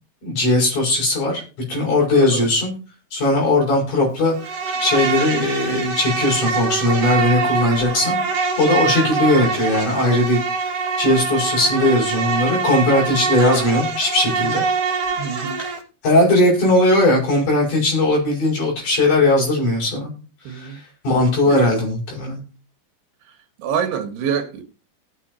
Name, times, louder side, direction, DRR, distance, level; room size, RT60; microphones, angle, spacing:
voice 1, 0.2-1.4 1.7-2.7 3.1-8.2 8.6-14.6 15.6-15.7 16.0-20.1 20.5-22.4, left 1 dB, 50° left, 7.6 m, -19 dB
voice 2, 2.1-2.5 9.0-9.1 11.0-11.1 15.2-15.6 20.5-20.8 21.5-21.7 23.6-24.6, right 7 dB, 85° right, 3.7 m, -26 dB
Insect, 4.4-15.8, right 4 dB, 40° right, 3.5 m, -24 dB
18.5 x 8.3 x 2.8 m
omnidirectional pair, 4.6 m